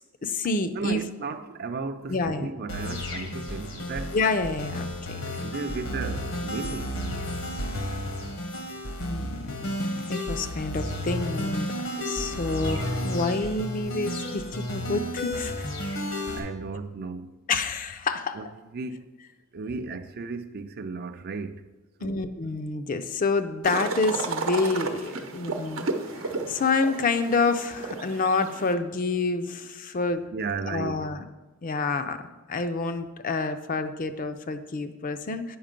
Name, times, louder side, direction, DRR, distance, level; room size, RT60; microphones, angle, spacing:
voice 1, 0.2-1.0 2.1-2.5 4.1-5.2 9.0-15.7 17.5-18.4 22.0-25.9 26.5-30.2 30.6-31.2 31.6-35.6, left 3 dB, 40° left, 0.5 m, -28 dB
voice 2, 0.7-4.2 5.2-7.3 15.9-16.1 16.3-17.4 18.3-19.1 19.5-21.7 22.0-22.2 30.3-31.1, right 4 dB, 50° right, 0.4 m, -35 dB
sound 1, 2.7-16.4, left 1 dB, 85° left, 1.4 m, -32 dB
sound 2, 23.6-28.7, right 3 dB, 80° right, 0.8 m, -33 dB
8.6 x 5.7 x 5.1 m
head